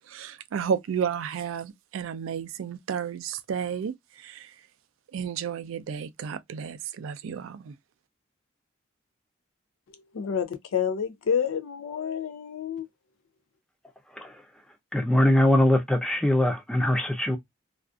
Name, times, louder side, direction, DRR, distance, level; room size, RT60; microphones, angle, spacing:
voice 1, 0.1-4.5 5.1-7.8, right 7 dB, 80° right, 0.3 m, -32 dB
voice 2, 9.9-12.9, left 7 dB, 85° left, 0.4 m, -29 dB
voice 3, 14.9-17.4, left 1 dB, 5° left, 0.3 m, -22 dB
2.4 x 2.3 x 2.3 m
head